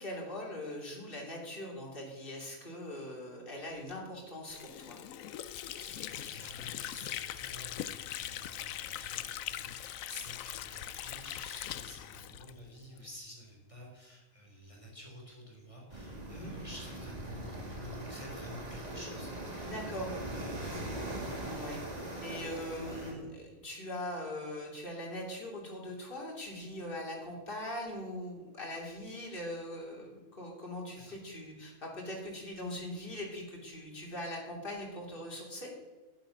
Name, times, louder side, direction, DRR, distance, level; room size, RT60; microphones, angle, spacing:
voice 1, 0.0-4.6 4.9-5.0 16.3-16.5 19.7-20.3 21.5-21.8 22.2-35.7, left 1 dB, 40° left, -1 dB, 3.3 m, -41 dB
Water / Sink (filling or washing), 4.5-13.1, left 11 dB, 85° left, 1.1 m, -41 dB
voice 2, 5.7-20.3 20.6-21.1 31.0-31.2, left 1 dB, 25° left, -1 dB, 4.0 m, -51 dB
sound 1, 15.9-23.1, right 1 dB, 30° right, 2.6 m, -41 dB
12.0 x 11.0 x 5.9 m, 1.3 s
omnidirectional pair, 1.4 m